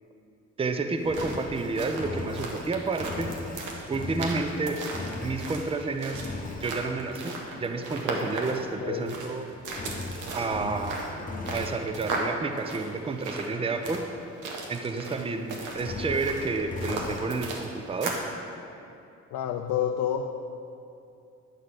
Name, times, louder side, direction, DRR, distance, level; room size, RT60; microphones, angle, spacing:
voice 1, 0.6-3.3 3.9-4.8 5.2-6.2 6.6-9.5 10.3-11.0 11.5-14.0 14.7-18.1, right 3 dB, 20° right, 6 dB, 0.5 m, -30 dB
sound 1, 0.9-18.3, right 3 dB, 90° right, 1.2 m, -37 dB
Engine, 1.1-5.8 6.1-6.8 9.7-11.9 15.7-17.3, left 3 dB, 25° left, 0.9 m, -38 dB
voice 2, 8.8-9.1 19.3-20.3, left 9 dB, 75° left, 5 dB, 0.5 m, -28 dB
9.6 x 3.9 x 6.5 m, 2.6 s
cardioid pair, 90°, 30 cm